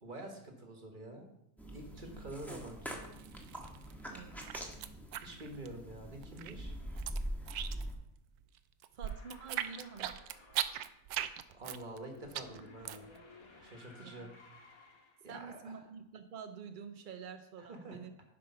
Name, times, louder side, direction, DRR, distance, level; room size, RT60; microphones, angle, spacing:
voice 1, 0.0-1.3 1.7-3.0 5.2-6.7 11.5-13.1 13.6-14.3 15.2-15.8 17.6-18.0, right 1 dB, 35° right, 3 dB, 1.6 m, -47 dB
sound 1, 1.6-7.9, equal, ahead, 1.3 m, -43 dB
Egg crack and pulp, 2.9-3.9 4.2-6.0 6.2-8.1 8.4-13.2, right 11 dB, 85° right, 1.1 m, -39 dB
voice 2, 8.9-10.1 14.0-14.3 15.3-18.1, right 6 dB, 60° right, 7 dB, 0.5 m, -48 dB
sound 2, 9.0-10.9 11.9-15.2, left 3 dB, 70° left, 1.9 m, -57 dB
10.5 x 5.4 x 5.6 m, 0.81 s
omnidirectional pair, 1.6 m